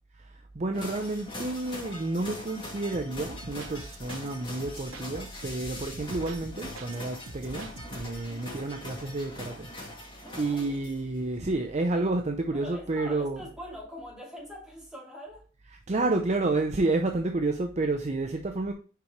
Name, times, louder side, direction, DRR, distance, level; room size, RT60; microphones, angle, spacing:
voice 1, 0.2-9.7 10.0-10.1 10.4-13.4 15.9-18.7, right 2 dB, 35° right, 0.6 m, -30 dB
sound 1, 0.7-11.2, left 1 dB, 25° left, 2.4 m, -42 dB
sound 2, 2.9-4.3 4.6-7.0 7.3-8.3, right 2 dB, 90° right, 1.0 m, -44 dB
voice 2, 8.1-8.5 10.2-10.8 12.5-15.5, equal, 5° right, 2.9 m, -43 dB
6.7 x 5.0 x 3.1 m
head